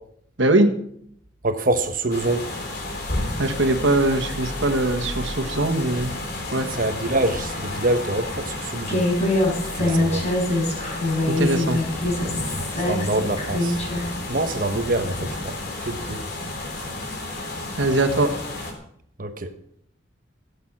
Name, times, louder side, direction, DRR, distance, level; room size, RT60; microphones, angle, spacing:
voice 1, 0.4-0.7 3.4-6.1 6.5-6.7 11.3-11.8 17.8-18.3, right 2 dB, 75° right, 1.6 m, -21 dB
voice 2, 1.4-2.5 6.7-9.0 9.7-10.3 12.9-13.8 14.3-15.2 15.4-15.5 15.8-16.2 19.2-19.5, right 2 dB, 45° right, 1.1 m, -25 dB
sound 1, 2.1-18.7, left 2 dB, 55° left, 3.5 m, -32 dB
Human voice, 8.9-14.1, left 1 dB, 40° left, 4.4 m, -24 dB
16.0 x 8.4 x 6.1 m
head